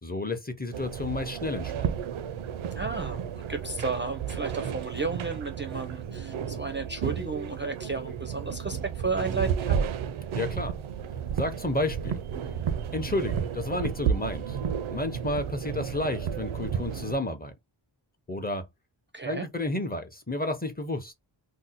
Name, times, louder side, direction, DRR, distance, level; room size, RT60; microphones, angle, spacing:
voice 1, 0.0-1.9 10.3-10.7 11.4-12.2 12.9-14.6 14.9-17.5 18.3-18.7 19.3-21.1, left 2 dB, 20° left, 0.6 m, -31 dB
sound 1, 0.7-17.1, right 8 dB, 90° right, 0.5 m, -32 dB
voice 2, 2.8-9.8 19.1-19.5, right 4 dB, 25° right, 0.4 m, -33 dB
2.7 x 2.1 x 4.0 m
wide cardioid pair, 75°, 47 cm